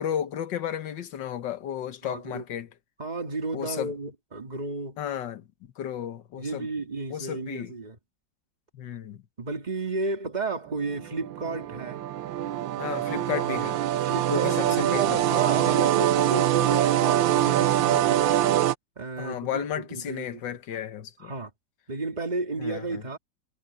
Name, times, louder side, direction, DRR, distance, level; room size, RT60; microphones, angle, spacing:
voice 1, 0.0-2.7 3.5-3.9 5.0-5.5 5.8-6.7 7.1-7.7 8.7-9.2 12.8-13.8 14.3-15.2 19.2-21.3 22.6-23.0, left 9 dB, 70° left, 1.8 m, -33 dB
voice 2, 2.0-2.4 3.0-5.0 6.4-8.0 9.4-12.0 13.1-13.2 14.0-18.4 19.0-20.4 21.2-21.5 21.9-23.2, right 3 dB, 25° right, 2.3 m, -32 dB
sound 1, 10.8-18.7, right 12 dB, 90° right, 1.6 m, -24 dB
omnidirectional pair, 2.0 m